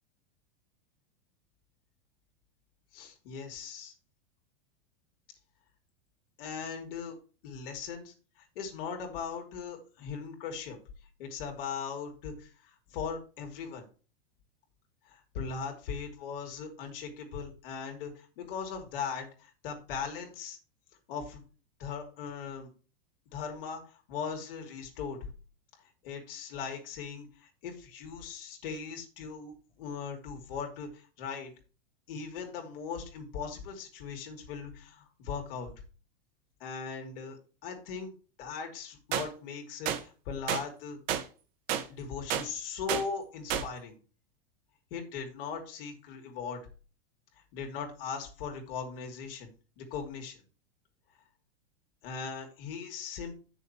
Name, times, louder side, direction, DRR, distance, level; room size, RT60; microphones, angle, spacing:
voice 1, 2.9-3.9 6.4-7.2 7.4-10.8 11.2-13.8 15.1-20.6 21.1-21.4 21.8-22.7 23.3-25.2 26.0-29.5 29.8-31.5 32.1-35.7 36.6-37.4 37.6-38.1 38.4-41.0 41.9-44.0 44.9-46.6 47.5-49.5 49.8-50.4 52.0-53.3, left 6 dB, 65° left, 3 dB, 2.8 m, -39 dB
sound 1, 39.1-39.3 39.9-40.0 40.5-40.6 41.1-41.2 41.7-41.8 42.3-42.5 42.9-43.0 43.5-43.7, right 10 dB, 45° right, 1.2 m, -30 dB
7.8 x 6.6 x 4.4 m, 0.36 s
supercardioid pair, 150°, 30 cm